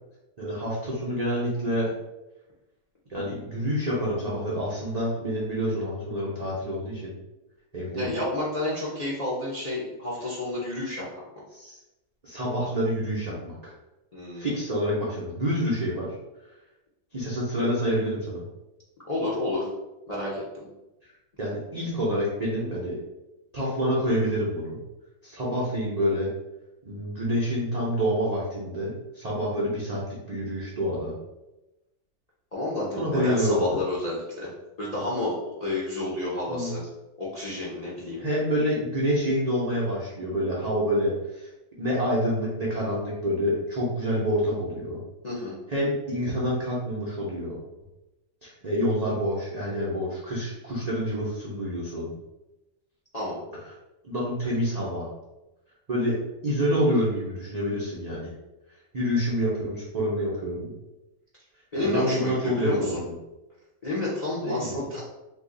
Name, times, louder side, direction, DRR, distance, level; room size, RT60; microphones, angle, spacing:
voice 1, 0.4-1.9 3.1-7.1 7.7-8.2 11.5-11.8 12.2-13.7 14.4-16.2 17.1-18.5 21.4-23.0 23.5-24.8 25.2-26.3 26.8-30.0 30.3-31.1 33.0-33.8 36.5-36.7 38.2-41.5 41.8-45.0 45.7-47.6 48.4-52.1 54.0-55.1 55.9-58.3 58.9-60.7 61.8-63.1 64.4-64.8, equal, 80° right, -6 dB, 0.3 m, -27 dB
voice 2, 8.0-11.2 14.1-14.5 19.0-19.7 20.1-20.7 32.5-34.5 34.8-36.8 37.2-38.2 45.2-45.6 53.1-53.4 61.7-63.0 63.8-65.0, left 2 dB, 55° left, -6 dB, 0.4 m, -30 dB
2.7 x 2.4 x 3.7 m, 1.0 s
omnidirectional pair, 1.7 m